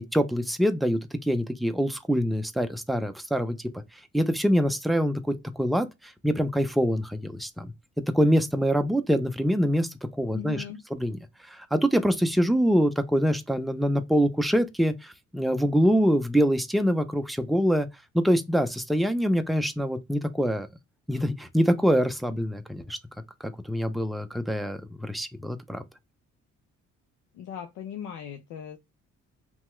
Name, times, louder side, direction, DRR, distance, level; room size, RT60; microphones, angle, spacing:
voice 1, 0.0-3.6 4.1-7.7 8.1-10.6 11.0-11.2 11.5-17.9 18.1-20.7 21.1-23.0 23.7-25.8, equal, ahead, 0.4 m, -25 dB
voice 2, 10.3-10.8 27.3-28.8, left 9 dB, 85° left, 0.5 m, -38 dB
2.8 x 2.3 x 3.0 m
cardioid pair, 90°, 30 cm